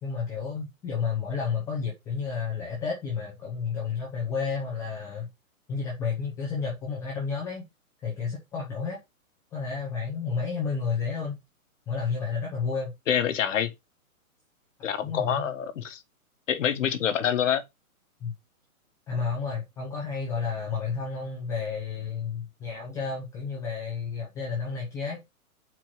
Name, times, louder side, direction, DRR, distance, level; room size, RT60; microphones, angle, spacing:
voice 1, 0.0-5.3 5.7-7.6 8.0-9.0 9.5-11.3 11.9-12.9 15.0-15.5 18.2-18.3 19.1-25.2, left 5 dB, 5° left, 0.6 m, -31 dB
voice 2, 13.1-13.7 14.8-16.0 16.5-17.6, left 9 dB, 60° left, 1.1 m, -26 dB
4.6 x 4.5 x 5.8 m
hypercardioid pair, 155°, 43 cm